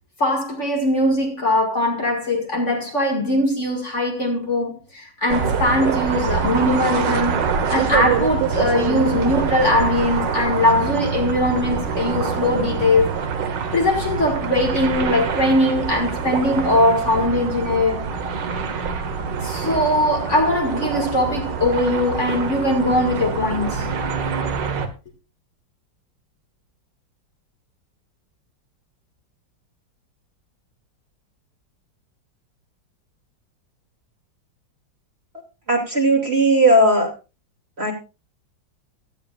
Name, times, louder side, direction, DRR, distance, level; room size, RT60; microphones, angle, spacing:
voice 1, 0.2-7.4 7.7-13.2 13.7-18.0 19.4-23.9, left 1 dB, 40° left, 2.4 m, -20 dB
sound 1, 5.3-24.9, right 6 dB, 70° right, 1.9 m, -25 dB
voice 2, 35.7-37.1 37.8-37.9, right 1 dB, 35° right, 2.8 m, -16 dB
16.5 x 12.5 x 2.5 m
omnidirectional pair, 2.0 m